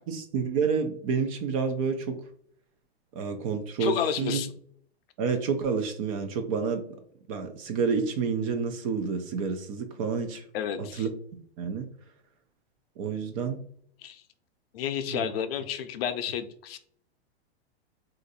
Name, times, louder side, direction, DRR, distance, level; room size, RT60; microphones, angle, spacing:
voice 1, 0.1-2.2 3.1-4.4 5.2-7.0 7.3-10.5 10.8-11.1 11.6-11.9 13.0-13.6 15.1-15.3, right 5 dB, 35° right, 6 dB, 0.4 m, -29 dB
voice 2, 3.8-4.5 10.5-11.0 14.0-14.2 14.7-16.8, left 8 dB, 60° left, 9 dB, 0.6 m, -31 dB
2.6 x 2.5 x 4.0 m, 0.62 s
hypercardioid pair, 140°, 33 cm